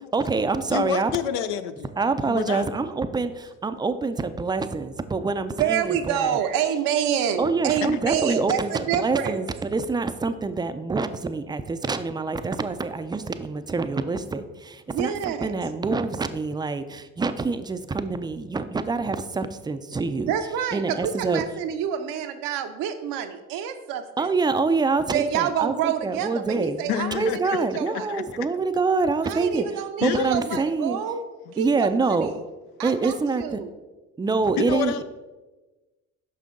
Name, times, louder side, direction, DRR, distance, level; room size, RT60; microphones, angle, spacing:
voice 1, 0.1-1.1 2.0-6.4 7.4-20.3 20.7-21.4 24.2-26.8 27.1-29.7 30.0-31.0 31.6-32.3 32.8-33.6 34.2-35.0, right 4 dB, 10° right, 10 dB, 0.4 m, -26 dB
voice 2, 0.7-1.9 2.2-2.7 26.9-27.4 27.9-28.2 30.0-30.6 34.6-35.0, left 9 dB, 75° left, 11 dB, 0.5 m, -28 dB
voice 3, 5.5-9.4 14.9-15.6 20.2-24.3 25.1-28.1 29.2-31.2 31.5-32.4 32.8-33.7, right 9 dB, 65° right, 8 dB, 0.7 m, -27 dB
5.6 x 5.4 x 3.7 m, 1.2 s
hypercardioid pair, 65°, 36 cm